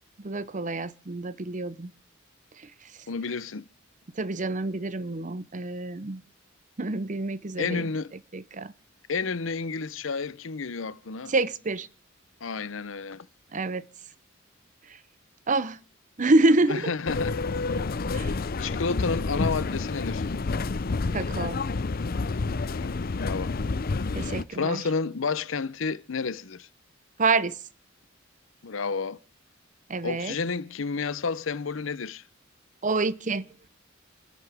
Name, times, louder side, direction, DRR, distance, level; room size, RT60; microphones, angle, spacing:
voice 1, 0.2-1.9 4.2-6.2 6.8-7.8 8.3-8.7 11.3-11.9 13.5-13.8 15.5-15.8 16.2-16.9 18.1-18.3 21.1-21.6 24.1-24.8 27.2-27.6 29.9-30.4 32.8-33.5, right 2 dB, 40° right, 0.7 m, -27 dB
voice 2, 3.1-3.7 7.6-8.1 9.1-11.3 12.4-13.3 16.7-17.4 17.7-17.8 18.6-20.2 22.7-23.5 24.5-26.7 28.6-29.2 30.0-32.2, left 4 dB, 80° left, 0.7 m, -31 dB
sound 1, 17.1-24.4, left 3 dB, 50° left, 0.6 m, -29 dB
27.5 x 10.5 x 3.5 m
head